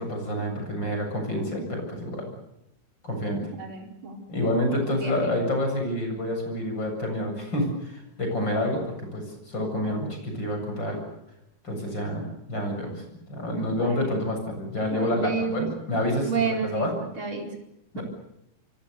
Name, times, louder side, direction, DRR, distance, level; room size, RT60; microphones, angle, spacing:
voice 1, 0.0-2.3 3.0-3.5 4.3-11.0 11.6-12.9 13.3-16.9 17.9-18.0, left 1 dB, 25° left, 3 dB, 8.3 m, -28 dB
voice 2, 3.6-4.2 4.8-5.3 13.7-14.1 14.9-15.6 16.3-16.9 17.2-17.5 17.9-18.0, right 5 dB, 30° right, 2 dB, 5.1 m, -30 dB
27.5 x 24.0 x 6.9 m, 0.81 s
omnidirectional pair, 4.5 m